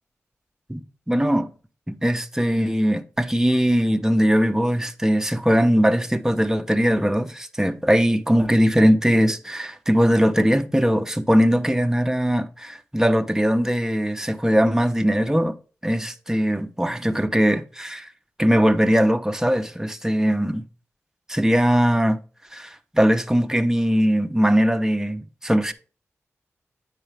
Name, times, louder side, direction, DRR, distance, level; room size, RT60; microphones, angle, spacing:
voice 1, 1.1-1.5 1.9-15.6 15.8-18.1 18.4-20.6 21.3-22.2 22.5-25.7, equal, 10° right, 0.8 m, -20 dB
8.6 x 5.0 x 3.4 m
cardioid pair, 45°, 5 cm